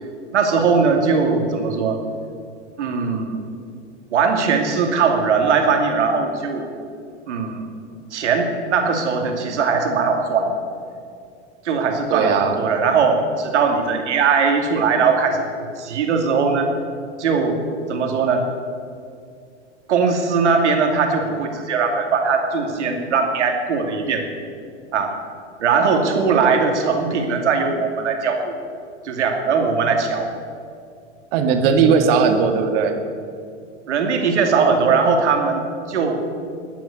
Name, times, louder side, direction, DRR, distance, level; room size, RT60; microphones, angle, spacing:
voice 1, 0.3-2.0 2.8-3.4 4.1-6.7 7.3-7.7 8.1-10.6 11.6-16.7 17.2-17.6 17.9-18.4 19.9-24.3 24.9-25.1 25.6-28.6 29.0-30.3 33.9-36.3, right 5 dB, 75° right, 4 dB, 2.6 m, -20 dB
voice 2, 12.1-12.6 31.3-33.0, right 6 dB, 55° right, 6 dB, 1.9 m, -17 dB
14.0 x 9.3 x 8.3 m, 2.3 s
hypercardioid pair, 115°, 35 cm